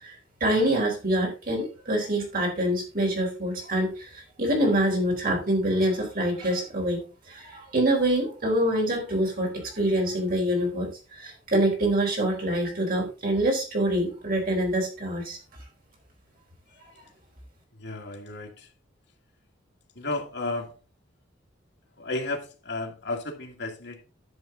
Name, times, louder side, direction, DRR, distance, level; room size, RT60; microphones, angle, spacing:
voice 1, 0.4-15.4, right 1 dB, 50° right, 0 dB, 4.2 m, -25 dB
voice 2, 17.8-18.7 20.0-20.7 22.0-24.0, left 2 dB, 60° left, 3 dB, 1.9 m, -33 dB
11.0 x 6.7 x 3.8 m, 0.32 s
head